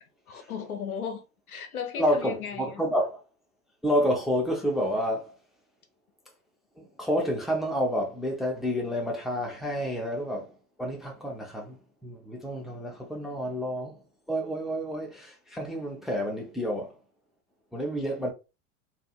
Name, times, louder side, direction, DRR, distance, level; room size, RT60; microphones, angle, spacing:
voice 1, 0.3-1.2 1.5-2.8, left 7 dB, 80° left, 0.8 m, -36 dB
voice 2, 2.0-3.2 3.8-5.3 6.8-10.5 10.8-14.0 14.3-16.9 17.7-18.3, equal, ahead, 0.6 m, -29 dB
2.6 x 2.5 x 2.4 m
figure-of-eight pair, 80°, 43 cm